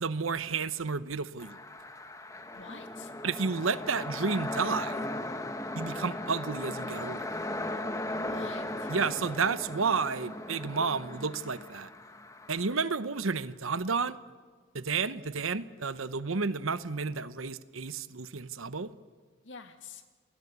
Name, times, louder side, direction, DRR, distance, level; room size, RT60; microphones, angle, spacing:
voice 1, 0.0-1.6 3.2-5.1 5.8-7.2 8.9-11.9 12.5-14.2 14.7-18.9, right 5 dB, 90° right, 14 dB, 1.0 m, -31 dB
sound 1, 1.4-12.8, left 1 dB, 15° left, 1.2 m, -37 dB
voice 2, 2.5-3.1 8.1-8.9 19.4-20.0, left 4 dB, 70° left, 7 dB, 2.2 m, -47 dB
29.0 x 21.0 x 8.2 m, 1.5 s
head